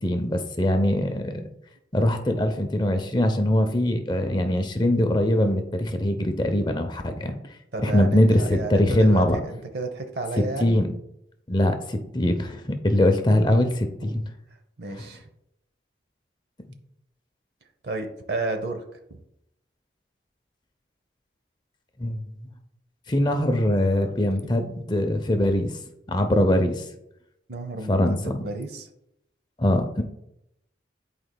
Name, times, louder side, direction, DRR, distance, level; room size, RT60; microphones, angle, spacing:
voice 1, 0.0-1.5 1.9-7.4 7.8-9.4 10.6-10.9 11.5-14.2 22.0-22.2 23.1-25.8 26.1-26.9 27.9-28.4 29.6-30.0, left 1 dB, 25° left, 6 dB, 0.6 m, -22 dB
voice 2, 7.7-10.8 14.1-14.2 14.8-15.3 17.8-18.8 27.5-28.9, right 3 dB, 65° right, 6 dB, 0.7 m, -32 dB
11.0 x 4.3 x 2.2 m, 0.81 s
head